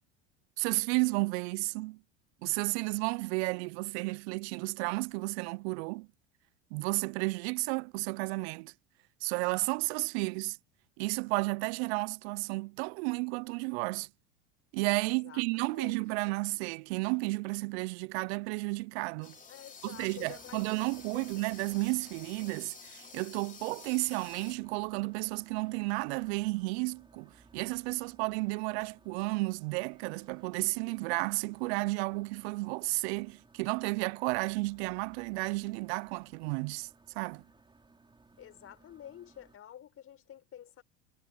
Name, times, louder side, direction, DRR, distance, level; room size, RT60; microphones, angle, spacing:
voice 1, 0.6-2.0 2.4-6.1 6.7-8.7 9.2-10.6 11.0-14.1 14.7-19.4 19.8-36.9 37.2-37.4, right 27 dB, 70° right, 0.5 m, -32 dB
voice 2, 15.2-16.4 19.5-20.6 21.0-21.4 38.4-40.8, left 10 dB, 40° left, 5.8 m, -50 dB
sound 1, 19.2-24.6, left 5 dB, 25° left, 3.1 m, -51 dB
sound 2, 19.9-39.6, right 3 dB, 15° right, 5.9 m, -61 dB
hypercardioid pair, 95°, 34 cm